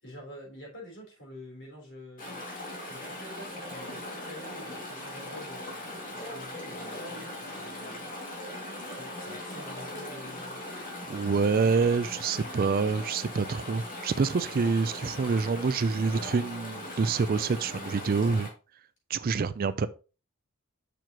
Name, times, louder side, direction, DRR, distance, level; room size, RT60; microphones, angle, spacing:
voice 1, 0.0-2.4 2.9-8.1 8.8-10.6, left 1 dB, 55° left, 3.7 m, -47 dB
Chatter / Stream, 2.2-18.5, left 1 dB, 40° left, 2.2 m, -39 dB
voice 2, 11.1-18.5 19.1-19.9, right 4 dB, 40° right, 0.3 m, -27 dB
6.9 x 6.0 x 2.9 m
head